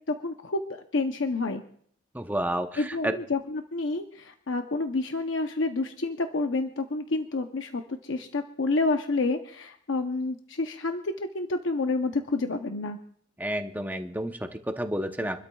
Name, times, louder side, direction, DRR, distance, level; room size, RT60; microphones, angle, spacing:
voice 1, 0.2-1.6 2.8-13.0, left 3 dB, 80° left, 5 dB, 0.8 m, -29 dB
voice 2, 2.1-3.2 13.4-15.4, right 1 dB, 10° right, 6 dB, 0.8 m, -30 dB
27.5 x 12.5 x 2.3 m, 0.62 s
head